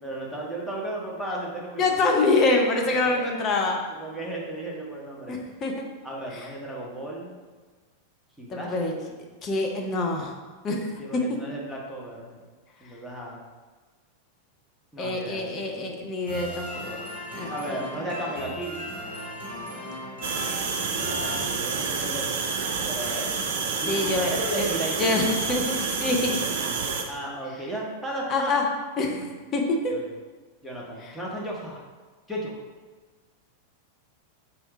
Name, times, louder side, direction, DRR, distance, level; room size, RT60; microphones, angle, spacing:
voice 1, 0.0-2.1 2.9-3.2 3.9-5.4 6.0-7.4 8.4-8.9 11.0-12.4 12.8-13.4 14.9-15.4 17.5-18.8 20.7-22.3 22.9-23.3 23.7-25.2 27.1-28.5 29.9-30.1 30.6-31.8 32.3-32.6, right 1 dB, 5° left, -5 dB, 1.0 m, -35 dB
voice 2, 1.8-3.8 5.3-5.7 6.3-6.4 8.5-8.9 9.4-10.3 10.6-11.4 15.0-17.0 17.3-17.8 23.9-24.7 25.0-26.4 28.3-28.6 29.0-29.2 29.5-29.9 31.0-31.1, left 2 dB, 30° left, 1 dB, 0.7 m, -25 dB
sound 1, 16.3-22.0, equal, 70° left, 1.2 m, -37 dB
sound 2, 20.2-27.0, right 5 dB, 55° right, 0.5 m, -28 dB
4.5 x 2.7 x 3.6 m, 1.3 s
figure-of-eight pair, 90°, 0 cm